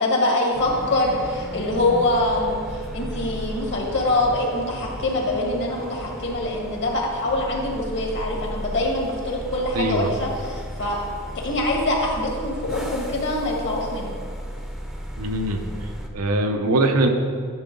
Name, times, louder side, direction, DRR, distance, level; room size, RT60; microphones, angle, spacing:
voice 1, 0.0-2.6 2.9-11.0 11.3-14.2, left 1 dB, 55° left, -1 dB, 1.7 m, -24 dB
sound 1, 0.5-16.1, equal, ahead, 0.7 m, -35 dB
voice 2, 9.7-10.1 15.2-15.6 16.1-17.1, right 2 dB, 80° right, 4 dB, 0.8 m, -21 dB
11.0 x 5.7 x 3.9 m, 2.1 s
head